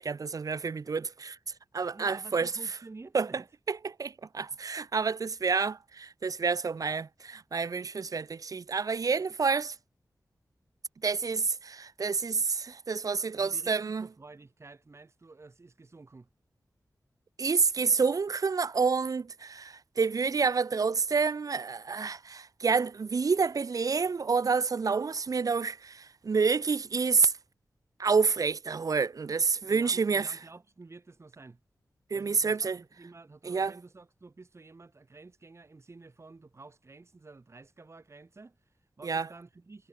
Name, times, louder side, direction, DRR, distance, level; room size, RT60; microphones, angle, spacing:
voice 1, 0.0-1.4 1.7-2.5 3.1-3.3 3.7-9.7 11.0-14.1 17.4-27.3 28.0-30.3 32.1-32.8 33.4-33.7 39.0-39.3, right 5 dB, 65° right, 0.9 m, -28 dB
voice 2, 1.9-3.5 13.4-16.3 29.6-31.6 32.1-39.9, right 3 dB, 45° right, 5.3 m, -51 dB
wide cardioid pair, 90°, 7 cm